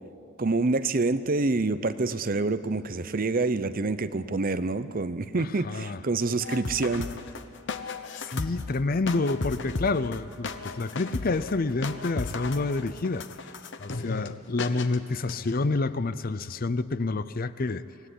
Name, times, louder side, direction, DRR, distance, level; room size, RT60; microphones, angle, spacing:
voice 1, 0.4-7.1, right 3 dB, 40° right, 13 dB, 0.7 m, -27 dB
voice 2, 5.4-6.0 8.2-13.3 13.8-17.8, left 3 dB, 45° left, 15 dB, 0.6 m, -28 dB
sound 1, 6.4-14.3 14.6-15.0 15.3-15.7, left 3 dB, 60° left, 1.0 m, -35 dB
25.0 x 17.5 x 10.0 m, 2.9 s
head